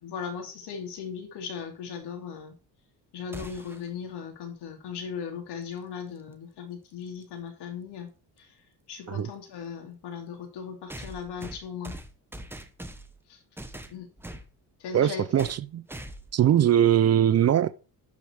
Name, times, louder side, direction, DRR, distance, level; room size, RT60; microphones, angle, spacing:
voice 1, 0.0-2.5 3.1-8.1 8.4-8.5 8.9-12.0 13.3-13.4 13.9-14.1 14.8-15.5, left 7 dB, 75° left, 3.1 m, -38 dB
sound 1, 3.3-3.9 6.0-6.1 7.2-7.3 10.9-13.2 13.6-14.5 15.4-15.6 15.9-16.4, right 1 dB, 5° right, 0.9 m, -42 dB
voice 2, 14.9-15.8 16.3-17.7, right 10 dB, 40° right, 0.5 m, -21 dB
12.0 x 5.1 x 4.7 m
cardioid pair, 135°, 40 cm